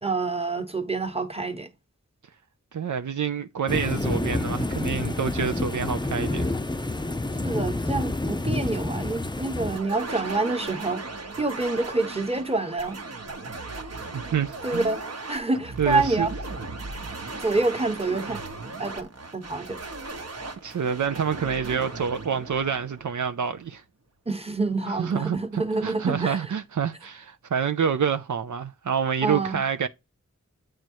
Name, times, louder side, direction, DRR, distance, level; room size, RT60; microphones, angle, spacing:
voice 1, 0.0-1.7 7.4-11.0 11.4-13.0 14.6-15.0 15.3-16.3 17.4-18.4 18.8-19.8 24.3-26.5 29.2-29.6, right 3 dB, 20° right, 1.0 m, -27 dB
voice 2, 2.7-6.5 14.1-14.9 15.8-16.3 20.6-23.8 24.9-29.9, right 7 dB, 75° right, 0.5 m, -27 dB
sound 1, 3.7-9.8, left 2 dB, 15° left, 0.5 m, -28 dB
sound 2, 9.7-23.6, right 3 dB, 55° right, 0.9 m, -37 dB
8.9 x 3.1 x 4.5 m
wide cardioid pair, 50°, 30 cm